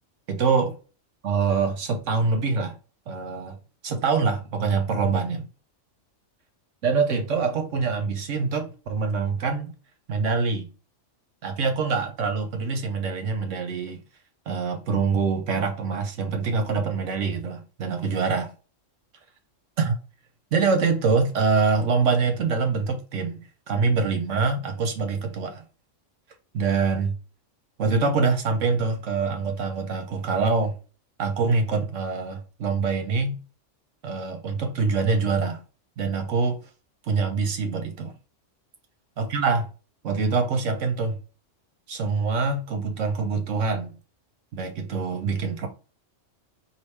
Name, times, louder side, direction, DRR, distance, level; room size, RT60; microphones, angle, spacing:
voice 1, 0.3-0.7 1.2-2.7 3.1-3.6 3.8-5.5 6.8-9.7 10.1-10.7 11.4-14.0 14.5-18.5 19.8-20.0 20.5-25.6 26.5-27.2 27.8-30.8 31.2-33.4 34.0-35.6 36.0-36.6 37.0-38.1 39.2-39.7 40.0-41.2 41.9-43.9 44.5-45.7, right 4 dB, 80° right, 1.2 m, -25 dB
4.9 x 2.7 x 3.3 m
omnidirectional pair, 1.3 m